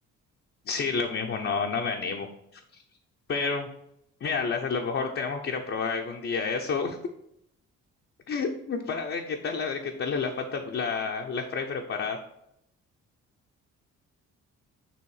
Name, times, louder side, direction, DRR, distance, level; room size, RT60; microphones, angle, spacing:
voice 1, 0.7-2.3 3.3-3.7 4.2-7.0 8.3-12.2, left 5 dB, 45° left, 1 dB, 0.7 m, -29 dB
6.9 x 3.1 x 4.8 m, 0.77 s
cardioid pair, 90°, 30 cm